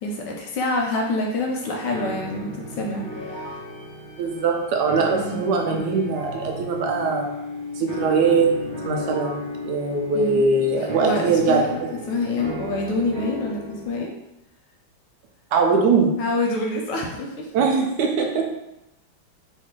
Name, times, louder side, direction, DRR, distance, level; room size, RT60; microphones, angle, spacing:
voice 1, 0.0-3.6 5.1-5.4 10.1-10.4 10.8-11.8 12.1-14.1 16.2-17.5, left 2 dB, 75° left, 0 dB, 1.1 m, -27 dB
sound 1, 0.8-11.8, left 4 dB, 35° right, 1.3 m, -38 dB
sound 2, 1.9-13.9, equal, 30° left, 0.4 m, -36 dB
voice 2, 4.2-7.3 7.8-8.5 8.8-11.9 15.5-16.2 17.5-18.5, right 4 dB, 75° right, 1 dB, 1.0 m, -21 dB
3.1 x 2.6 x 3.6 m, 0.89 s
omnidirectional pair, 2.2 m